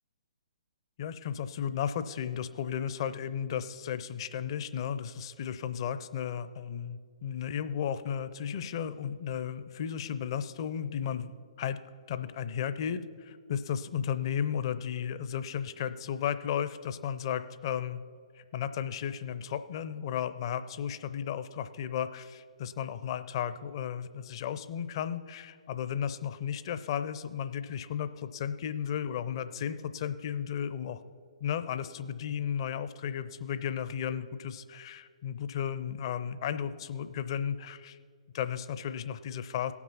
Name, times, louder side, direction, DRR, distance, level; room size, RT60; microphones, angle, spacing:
voice 1, 1.0-11.3 11.6-11.8 12.1-18.0 18.4-31.0 31.4-38.0 38.3-39.7, left 8 dB, 45° left, 12 dB, 0.6 m, -34 dB
17.0 x 6.1 x 5.6 m, 2.1 s
figure-of-eight pair, 130°, 4 cm